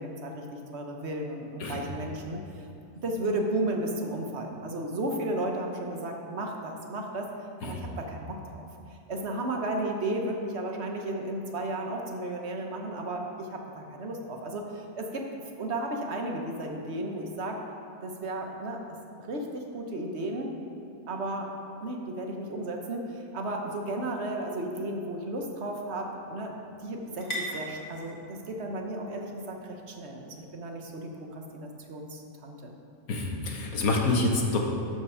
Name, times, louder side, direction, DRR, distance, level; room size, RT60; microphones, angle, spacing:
voice 1, 0.0-2.4 3.0-7.3 7.6-8.6 9.1-15.3 15.6-17.6 18.0-20.5 21.1-21.5 21.8-26.6 26.8-32.7, right 1 dB, 50° right, 2 dB, 1.1 m, -34 dB
sound 1, 24.0-31.5, equal, 25° left, 1.6 m, -44 dB
voice 2, 33.1-34.6, left 2 dB, 70° left, 1 dB, 1.6 m, -27 dB
13.0 x 4.9 x 5.6 m, 2.6 s
omnidirectional pair, 1.6 m